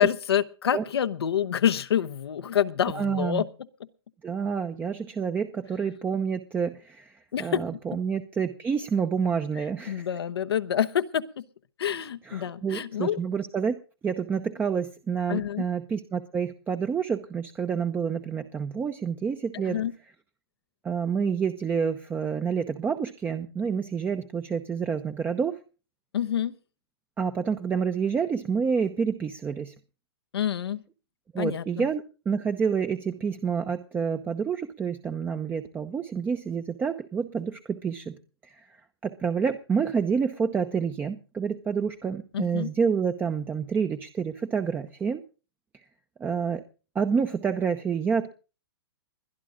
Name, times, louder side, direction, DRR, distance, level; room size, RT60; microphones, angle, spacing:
voice 1, 0.0-3.5 7.3-7.6 9.9-11.4 11.8-13.2 15.3-15.7 19.6-19.9 26.1-26.5 30.3-30.8 31.4-31.9 42.3-42.7, left 9 dB, 80° left, 11 dB, 1.0 m, -27 dB
voice 2, 2.9-3.4 4.2-10.1 12.2-13.7 14.0-19.8 20.8-25.6 27.2-29.7 31.3-38.1 38.4-38.8 39.0-45.2 46.2-46.6 46.9-48.3, right 6 dB, 15° right, 8 dB, 0.8 m, -28 dB
21.0 x 11.5 x 3.8 m, 0.34 s
hypercardioid pair, 130°, 13 cm